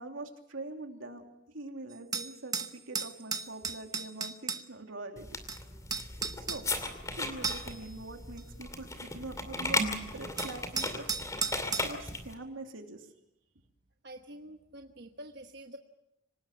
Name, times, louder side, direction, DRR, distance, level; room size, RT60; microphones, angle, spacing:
voice 1, 0.0-5.3 6.4-6.7 7.1-11.2 11.4-13.1, right 2 dB, 90° right, 3 dB, 3.0 m, -44 dB
sound 1, 1.9-4.6 5.5-5.6 5.9-6.6 7.4-7.8 8.4-8.5 9.6-9.7 10.4-11.9, right 5 dB, 20° right, 0.9 m, -35 dB
sound 2, 5.2-12.3, left 2 dB, 15° left, 2.5 m, -36 dB
voice 2, 14.0-15.8, right 1 dB, 55° right, 4 dB, 1.2 m, -47 dB
26.0 x 18.5 x 7.1 m, 0.86 s
head